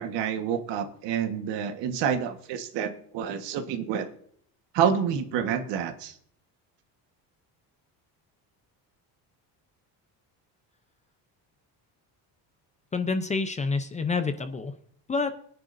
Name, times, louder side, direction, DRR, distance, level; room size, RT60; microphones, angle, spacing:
voice 1, 0.0-4.1 4.7-6.1, right 8 dB, 75° right, 7 dB, 1.4 m, -28 dB
voice 2, 12.9-14.7 15.1-15.3, left 4 dB, 15° left, 9 dB, 0.5 m, -28 dB
23.0 x 10.0 x 2.6 m, 0.63 s
cardioid pair, 170°, 42 cm